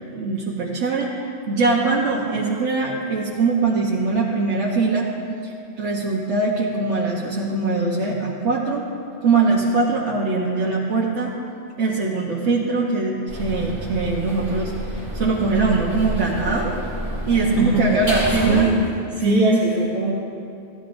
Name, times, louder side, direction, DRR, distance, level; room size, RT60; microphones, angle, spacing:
voice 1, 0.1-1.1 1.5-5.1 5.4-8.8 9.2-11.3 11.8-14.7 15.2-16.8 17.3-18.7 19.2-19.6, right 3 dB, 90° right, -4 dB, 1.3 m, -22 dB
sound 1, 13.3-18.7, equal, 30° right, 2.6 m, -29 dB
voice 2, 17.4-20.1, right 2 dB, ahead, -8 dB, 2.7 m, -22 dB
16.0 x 12.0 x 2.6 m, 2.5 s
omnidirectional pair, 1.2 m